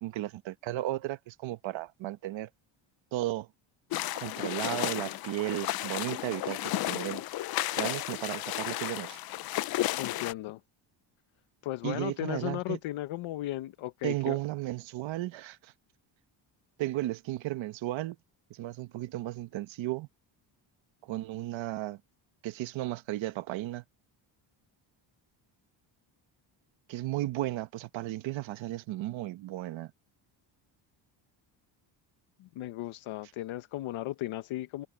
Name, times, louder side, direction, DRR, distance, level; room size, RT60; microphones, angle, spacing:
voice 1, 0.0-2.5 3.1-3.5 4.1-7.2 7.8-9.2 11.8-12.8 14.0-15.7 16.8-18.2 18.5-20.1 21.0-22.0 22.4-23.8 26.9-29.9, right 15 dB, 75° right, 1.2 m, -34 dB
sound 1, 3.9-10.3, left 15 dB, 55° left, 0.5 m, -33 dB
voice 2, 9.9-10.6 11.6-14.4 32.4-34.9, left 15 dB, 85° left, 1.1 m, -36 dB
cardioid pair, 170°, 46 cm